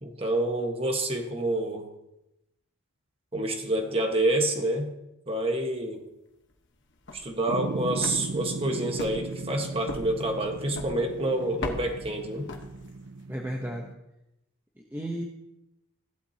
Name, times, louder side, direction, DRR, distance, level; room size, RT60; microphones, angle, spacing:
voice 1, 0.0-1.9 3.3-4.9 5.3-6.1 7.1-12.5, right 1 dB, 25° right, 3 dB, 1.3 m, -28 dB
sound 1, 6.9-13.2, left 2 dB, 50° left, 1.2 m, -41 dB
sound 2, 7.5-13.9, right 3 dB, 65° right, 0.6 m, -37 dB
voice 2, 13.3-13.9 14.9-15.2, right 1 dB, 10° right, 0 dB, 0.8 m, -33 dB
16.0 x 11.5 x 2.8 m, 0.89 s
head